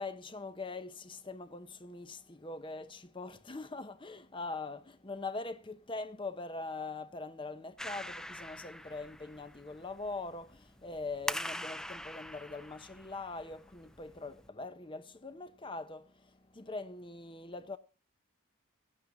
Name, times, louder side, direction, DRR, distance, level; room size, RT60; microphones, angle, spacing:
voice 1, 0.0-17.8, left 3 dB, 25° left, 0.8 m, -42 dB
Clapping, 7.8-14.5, left 1 dB, 5° left, 0.5 m, -44 dB
17.5 x 11.5 x 2.7 m
head